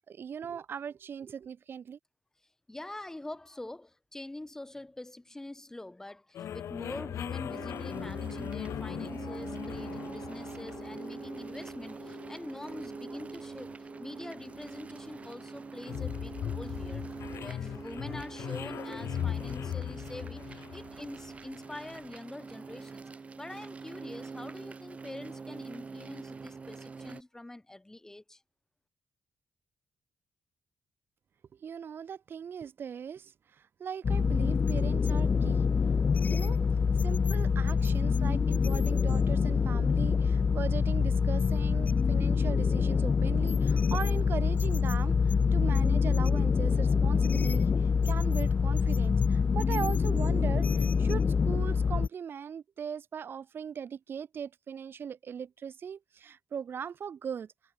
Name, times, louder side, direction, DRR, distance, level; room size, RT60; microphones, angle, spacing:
voice 1, 0.1-2.0 31.6-33.3 33.8-35.6 36.2-36.6 37.0-57.5, right 7 dB, 50° right, 5.4 m, -39 dB
voice 2, 2.7-17.1 17.4-23.0 23.4-28.4, left 1 dB, 10° left, 7.6 m, -45 dB
sound 1, 6.3-21.8, left 10 dB, 75° left, 1.3 m, -40 dB
sound 2, 7.5-27.2, right 4 dB, 30° right, 1.0 m, -44 dB
sound 3, 34.0-52.1, left 5 dB, 35° left, 0.4 m, -26 dB
wide cardioid pair, 150°, 5 cm